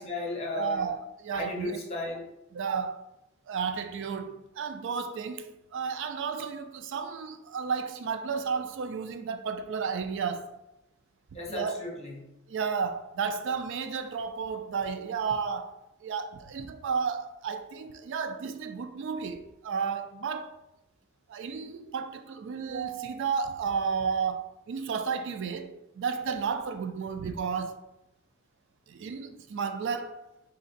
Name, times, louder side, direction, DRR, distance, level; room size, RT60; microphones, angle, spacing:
voice 1, 0.0-0.9 1.3-2.3 11.3-12.2, left 3 dB, 30° left, 1.1 m, -35 dB
voice 2, 0.5-1.8 2.5-3.0 3.5-10.6 11.5-11.8 12.5-20.6 21.3-27.8 28.9-30.2, right 6 dB, 65° right, 0.4 m, -32 dB
4.2 x 2.8 x 3.9 m
head